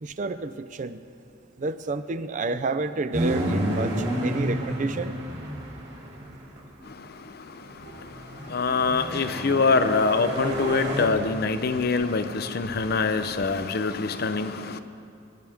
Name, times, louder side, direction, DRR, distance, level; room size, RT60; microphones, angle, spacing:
voice 1, 0.0-1.0 1.6-5.2, right 3 dB, 40° right, 0.5 m, -30 dB
sound 1, 3.1-6.7 7.8-11.1, equal, 55° right, 2.5 m, -30 dB
voice 2, 6.8-14.8, left 4 dB, 50° left, 0.6 m, -25 dB
23.5 x 10.5 x 3.5 m
head